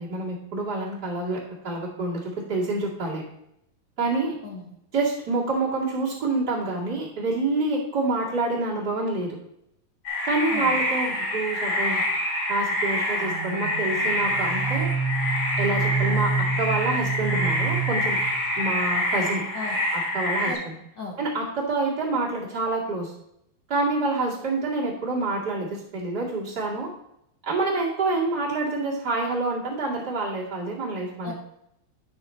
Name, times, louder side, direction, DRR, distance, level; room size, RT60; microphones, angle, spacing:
voice 1, 0.0-3.2 4.0-4.4 4.9-9.4 10.2-12.0 12.5-14.9 15.6-18.2 18.6-19.4 20.1-20.5 21.2-23.1 23.7-26.9 27.4-31.3, right 3 dB, 35° right, -6 dB, 2.2 m, -27 dB
voice 2, 4.4-4.7 10.5-10.8 19.5-19.8 20.4-21.2 31.2-31.3, left 3 dB, 80° left, -2 dB, 1.0 m, -37 dB
sound 1, 10.0-20.5, left 1 dB, 35° left, 3.0 m, -26 dB
sound 2, 13.2-18.8, right 5 dB, 65° right, 1.6 m, -28 dB
11.0 x 6.4 x 4.3 m, 0.78 s
omnidirectional pair, 4.1 m